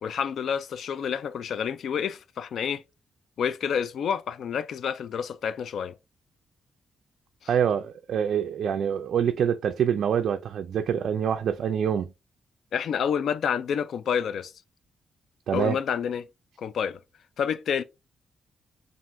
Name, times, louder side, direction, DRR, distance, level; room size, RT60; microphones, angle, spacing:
voice 1, 0.0-2.8 3.4-6.0 12.7-14.5 15.5-16.3 16.6-17.0 17.4-17.8, left 7 dB, 70° left, 0.4 m, -28 dB
voice 2, 7.5-12.1 15.5-15.8, right 8 dB, 70° right, 0.3 m, -25 dB
7.3 x 2.5 x 2.5 m
cardioid pair, 110°, 0 cm